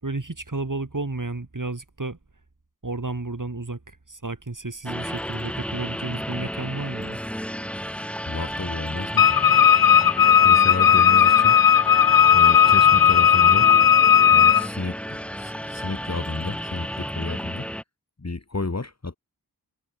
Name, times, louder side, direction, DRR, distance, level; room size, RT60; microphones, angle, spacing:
voice 1, 0.0-2.2 2.8-7.2, right 2 dB, 50° right, 5.9 m, -32 dB
sound 1, 4.9-17.8, equal, 5° left, 3.4 m, -33 dB
voice 2, 8.3-9.5 10.4-11.6 12.3-13.7 14.3-15.0 15.3-17.7 18.2-19.2, left 3 dB, 40° left, 2.1 m, -32 dB
Wind instrument woodwind instrument, 9.2-14.7, left 9 dB, 60° left, 0.5 m, -15 dB
wide cardioid pair, 40°, 39 cm